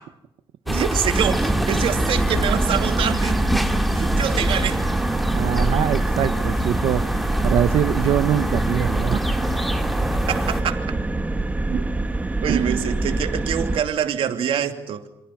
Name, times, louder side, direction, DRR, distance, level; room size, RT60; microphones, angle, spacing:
sound 1, 0.7-10.6, equal, ahead, 2.4 m, -26 dB
voice 1, 0.7-3.4 3.9-4.8 10.3-10.9 11.7-11.9 12.4-15.1, right 8 dB, 70° right, 2.8 m, -25 dB
sound 2, 1.1-13.8, right 2 dB, 15° right, 1.5 m, -25 dB
voice 2, 5.3-7.0 7.4-9.2 12.5-12.8, right 11 dB, 85° right, 1.0 m, -23 dB
28.0 x 27.0 x 6.0 m
cardioid pair, 135°, 10 cm